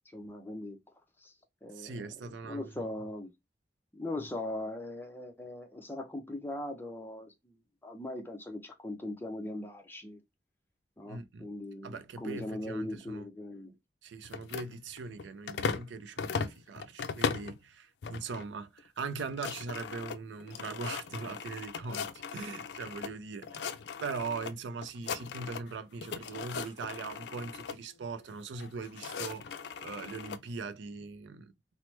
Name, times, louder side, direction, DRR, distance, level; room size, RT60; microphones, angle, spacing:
voice 1, 0.1-0.8 1.2-1.3 1.6-2.1 2.4-3.3 3.9-7.6 7.8-10.2 11.0-13.7, left 1 dB, 10° left, 0.5 m, -40 dB
voice 2, 1.7-2.9 11.1-11.5 11.8-13.3 14.0-31.5, right 4 dB, 90° right, 0.4 m, -41 dB
sound 1, 14.2-15.9 16.2-17.6 18.0-18.5 18.8-18.9 19.1-23.1 23.4-24.5 24.8-25.7 26.0-27.8 28.6-30.4, left 6 dB, 70° left, 0.4 m, -38 dB
3.0 x 2.0 x 3.1 m
head